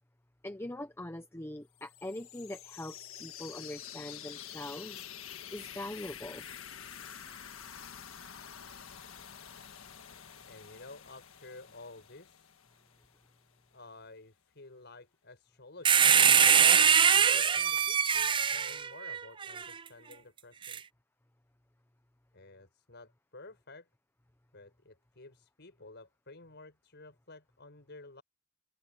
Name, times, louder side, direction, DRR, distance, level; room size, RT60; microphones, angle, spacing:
voice 1, 0.4-5.1 5.5-6.5, left 1 dB, 10° left, 0.8 m, -42 dB
sound 1, 1.8-13.5, left 9 dB, 80° left, 1.5 m, -48 dB
voice 2, 10.5-12.5 13.7-20.8 22.3-23.9 24.5-28.2, left 2 dB, 55° left, 6.1 m, -52 dB
sound 2, 15.8-19.6 20.6-20.8, right 7 dB, 25° right, 0.5 m, -23 dB
head